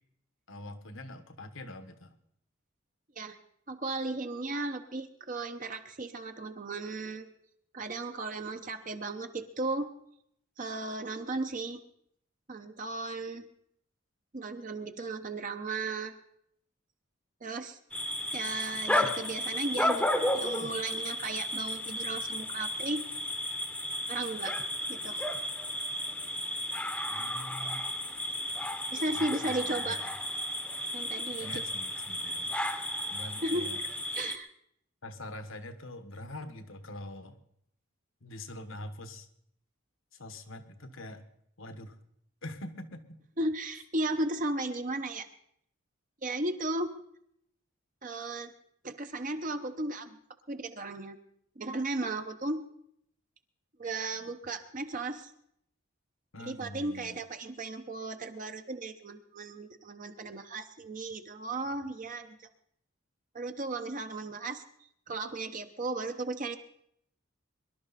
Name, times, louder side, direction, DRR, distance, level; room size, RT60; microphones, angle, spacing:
voice 1, 0.5-2.2 27.1-27.9 29.1-30.1 31.4-32.5 33.1-33.8 35.0-37.4 38.2-39.3 40.1-41.2 41.6-42.0 42.4-43.2 56.3-57.2, left 1 dB, 75° left, 9 dB, 1.4 m, -44 dB
voice 2, 3.7-7.3 7.7-9.9 10.6-11.8 12.5-13.5 14.3-16.1 17.4-17.8 18.3-20.1 20.3-23.0 24.1-24.5 24.9-25.2 28.9-30.0 30.9-31.5 33.4-33.7 34.2-34.5 43.4-45.3 46.2-46.9 48.0-48.5 48.8-50.2 50.5-51.2 51.6-52.6 53.8-55.3 56.5-62.4 63.3-64.6 65.1-66.6, right 2 dB, 40° right, 7 dB, 0.9 m, -35 dB
sound 1, 17.9-34.4, left 1 dB, 5° left, 0.9 m, -33 dB
23.0 x 11.5 x 4.2 m, 0.70 s
head